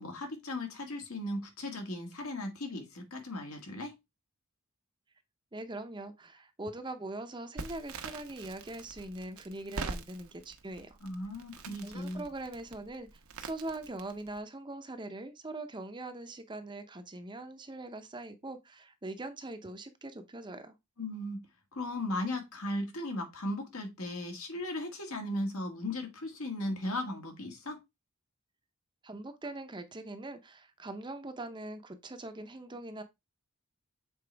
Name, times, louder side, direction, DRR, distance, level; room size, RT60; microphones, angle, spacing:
voice 1, 0.0-3.9 11.0-12.3 21.0-21.5 21.7-27.8, left 1 dB, 75° left, 1.8 m, -37 dB
voice 2, 5.5-11.0 11.8-13.1 13.4-20.7 29.0-33.0, right 2 dB, 20° right, 0.6 m, -42 dB
Crackle, 7.6-14.4, right 3 dB, 80° right, 0.9 m, -44 dB
6.8 x 4.3 x 3.4 m
head